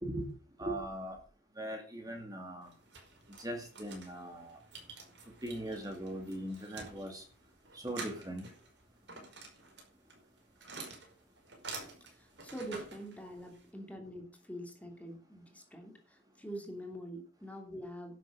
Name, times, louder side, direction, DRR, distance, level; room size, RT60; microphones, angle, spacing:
voice 1, 0.6-1.2 1.6-2.7 3.4-4.6 5.4-7.2 7.7-8.4, right 1 dB, 20° right, 3 dB, 2.3 m, -40 dB
sound 1, 2.6-13.7, right 3 dB, 75° right, 5.2 m, -49 dB
voice 2, 12.1-18.2, equal, 10° left, 3 dB, 2.8 m, -45 dB
11.5 x 7.8 x 6.4 m, 0.38 s
head